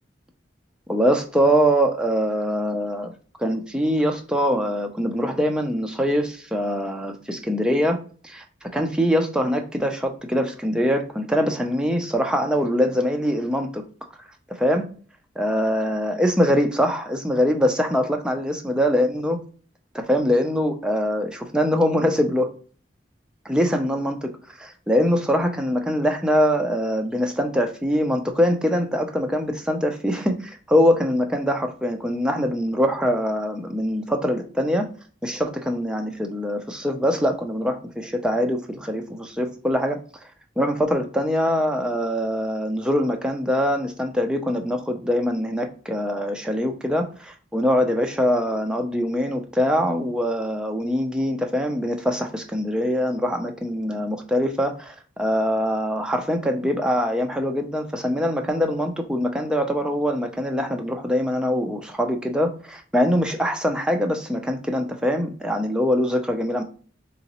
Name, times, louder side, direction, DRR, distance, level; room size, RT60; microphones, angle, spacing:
voice 1, 0.9-3.1 3.4-8.0 8.2-8.4 8.7-13.8 14.6-14.9 15.4-19.4 19.9-22.5 23.5-24.3 24.9-34.9 35.2-40.0 40.6-66.6, equal, 5° right, 4 dB, 0.4 m, -23 dB
3.8 x 3.0 x 2.8 m, 0.42 s
head